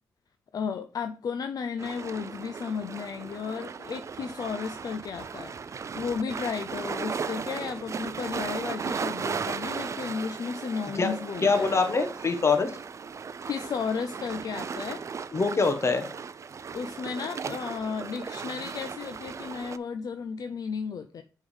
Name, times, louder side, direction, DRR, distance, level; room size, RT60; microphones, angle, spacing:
voice 1, 0.5-5.5 5.9-11.7 13.4-15.0 16.7-21.2, left 6 dB, 55° left, 0.5 m, -34 dB
sound 1, 1.8-19.8, right 6 dB, 40° right, 0.4 m, -36 dB
voice 2, 10.9-12.8 15.3-16.1, left 4 dB, 35° left, 1.2 m, -25 dB
6.9 x 3.6 x 5.4 m
cardioid pair, 80°, 8 cm